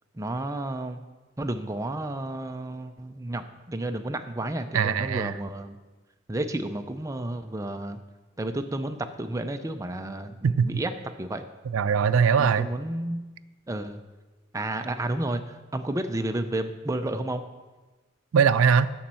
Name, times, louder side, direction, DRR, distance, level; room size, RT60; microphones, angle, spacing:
voice 1, 0.1-1.0 1.4-5.8 6.3-8.0 8.4-10.9 11.2-11.4 12.4-13.3 13.7-14.0 14.5-17.4, right 1 dB, 15° right, 7 dB, 0.5 m, -31 dB
voice 2, 4.7-5.3 10.4-10.8 11.7-12.7 18.3-18.9, right 6 dB, 80° right, 12 dB, 0.4 m, -21 dB
7.2 x 6.3 x 7.5 m, 1.2 s
head